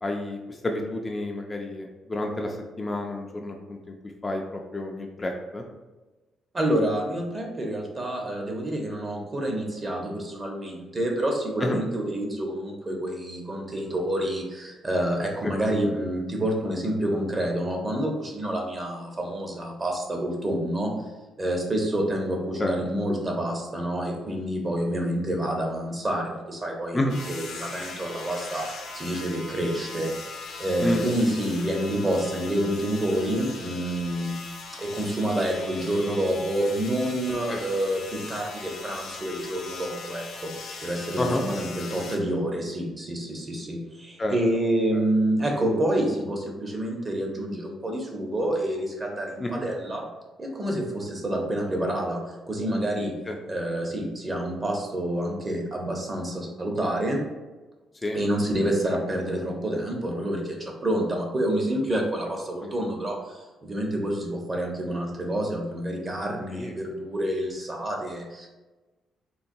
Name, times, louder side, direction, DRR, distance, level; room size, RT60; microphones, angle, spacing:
voice 1, 0.0-3.8 4.2-5.6 11.6-11.8 15.4-15.5 22.6-22.7 26.9-27.2 30.8-31.1 37.5-37.6 41.2-41.4 44.2-44.4 49.4-49.6 53.3-53.4 58.0-58.2 62.6-62.7 66.5-66.7, left 1 dB, 25° left, 2 dB, 0.4 m, -29 dB
voice 2, 6.5-20.9 21.4-28.7 28.9-30.1 30.6-34.4 34.8-50.1 50.4-52.2 52.5-53.1 53.5-57.2 58.1-68.5, right 1 dB, 30° right, 1 dB, 0.8 m, -28 dB
sound 1, 27.1-42.2, left 4 dB, 75° left, 0.7 m, -40 dB
3.9 x 2.2 x 2.6 m, 1.2 s
cardioid pair, 90°, 0 cm